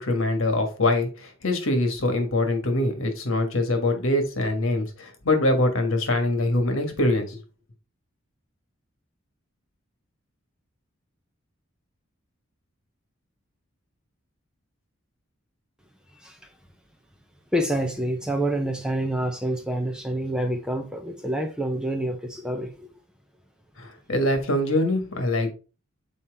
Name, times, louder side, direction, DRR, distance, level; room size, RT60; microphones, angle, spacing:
voice 1, 0.0-7.4 23.8-25.5, left 1 dB, 75° left, 1.5 m, -24 dB
voice 2, 17.5-22.9, right 1 dB, 5° right, 0.7 m, -27 dB
7.1 x 4.2 x 3.5 m
head